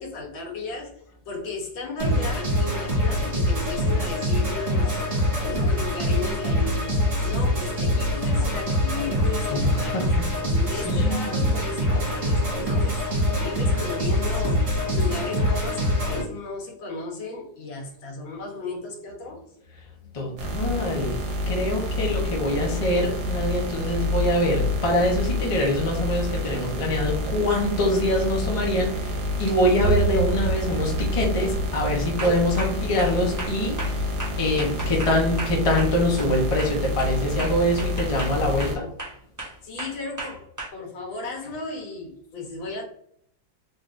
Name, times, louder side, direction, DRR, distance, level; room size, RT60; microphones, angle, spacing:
voice 1, 0.0-5.0 5.5-6.9 7.2-10.1 10.5-19.5 21.3-21.4 39.6-42.8, left 3 dB, 85° left, -1 dB, 1.9 m, -35 dB
sound 1, 2.0-16.2, left 1 dB, 40° right, 2.0 m, -24 dB
voice 2, 9.5-10.1 10.7-11.5 20.1-21.2 21.5-34.1 34.4-38.9, equal, 30° left, -1 dB, 0.6 m, -24 dB
sound 2, 20.4-38.8, left 1 dB, 80° right, 1.5 m, -28 dB
sound 3, 22.5-23.2 27.4-27.5 29.0-29.3 29.8-30.1 30.6-30.9 31.3-31.6 32.2-36.3 36.6-40.7, right 2 dB, 20° right, 0.5 m, -37 dB
4.0 x 3.5 x 2.6 m, 0.65 s
omnidirectional pair, 2.0 m